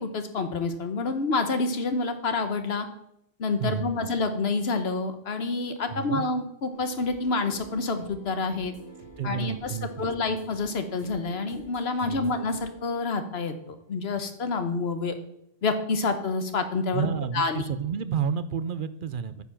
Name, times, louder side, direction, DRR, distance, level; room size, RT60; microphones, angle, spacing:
voice 1, 0.0-2.9 3.4-8.7 9.2-15.1 15.6-17.1 17.3-17.6, left 3 dB, 80° left, 8 dB, 1.3 m, -28 dB
voice 2, 3.6-4.1 5.9-6.2 9.2-10.1 12.0-12.3 16.9-19.4, right 7 dB, 60° right, 13 dB, 0.7 m, -31 dB
sound 1, 6.7-14.0, right 2 dB, 30° right, 3.3 m, -48 dB
9.3 x 7.0 x 5.9 m, 0.77 s
omnidirectional pair, 1.0 m